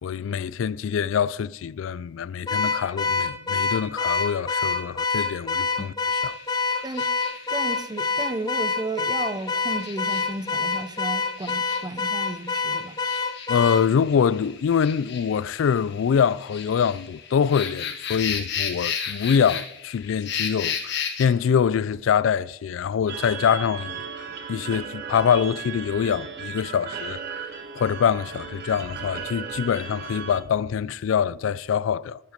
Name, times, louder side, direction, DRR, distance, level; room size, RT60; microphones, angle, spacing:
voice 1, 0.0-5.9 6.2-6.3 13.5-32.2, left 7 dB, 85° left, 0.3 m, -24 dB
Car / Alarm, 2.5-13.9, left 4 dB, 20° left, 0.7 m, -26 dB
sound 1, 6.2-21.3, left 7 dB, 60° left, 1.4 m, -35 dB
voice 2, 7.5-13.0, right 2 dB, 20° right, 0.7 m, -33 dB
sound 2, 23.1-30.4, right 7 dB, 60° right, 1.4 m, -36 dB
12.5 x 9.2 x 5.1 m
head